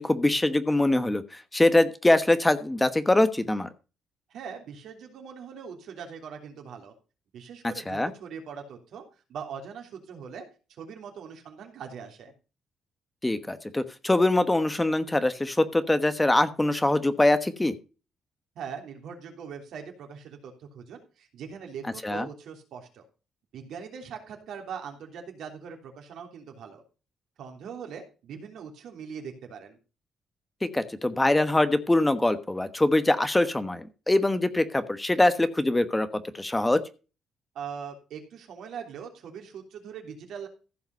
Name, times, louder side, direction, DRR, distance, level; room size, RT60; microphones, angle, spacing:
voice 1, 0.0-3.7 7.9-8.1 13.2-17.7 22.0-22.3 30.6-36.8, left 2 dB, 15° left, 11 dB, 1.2 m, -23 dB
voice 2, 4.3-6.9 7.3-9.0 9.3-10.5 10.8-12.3 18.5-23.0 23.5-26.8 27.4-29.8 37.5-40.5, right 7 dB, 75° right, 3 dB, 3.2 m, -41 dB
15.0 x 5.7 x 5.3 m, 0.32 s
cardioid pair, 90°, 0 cm